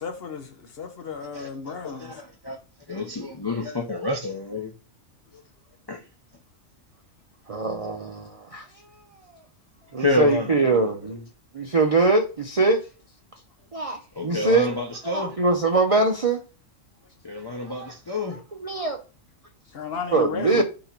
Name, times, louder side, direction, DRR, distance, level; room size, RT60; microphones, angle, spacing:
voice 1, 0.0-2.1 19.7-20.6, left 5 dB, 55° left, 0.8 m, -34 dB
voice 2, 1.3-2.6 2.9-4.7 5.9-6.0 10.0-10.9 14.1-15.4 17.2-18.4, left 2 dB, 30° left, 0.4 m, -29 dB
voice 3, 7.5-8.7 9.9-11.2 11.5-12.8 13.7-14.7 15.0-16.4 17.8-17.9 18.6-19.0 20.1-20.6, right 3 dB, 45° right, 0.4 m, -22 dB
4.1 x 2.9 x 4.3 m
omnidirectional pair, 1.4 m